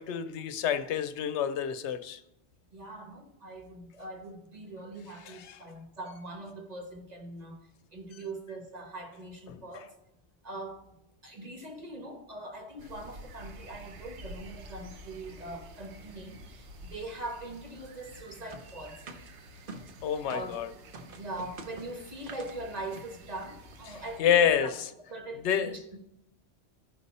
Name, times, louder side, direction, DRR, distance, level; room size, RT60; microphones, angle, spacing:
voice 1, 0.0-2.2 5.2-5.6 9.5-9.8 20.0-20.7 24.2-24.7 25.4-25.7, left 9 dB, 85° left, 0.9 m, -28 dB
voice 2, 2.7-7.6 7.9-9.9 10.4-10.8 11.2-19.0 20.3-20.5 21.1-24.7 25.1-26.0, right 2 dB, 40° right, 1.2 m, -42 dB
sound 1, 12.8-24.2, right 1 dB, 85° right, 1.1 m, -50 dB
sound 2, 18.5-20.6 20.9-22.6 22.9-23.1 23.4-23.5 23.7-24.0, right 3 dB, 55° right, 0.9 m, -47 dB
13.0 x 5.3 x 4.1 m
omnidirectional pair, 1.1 m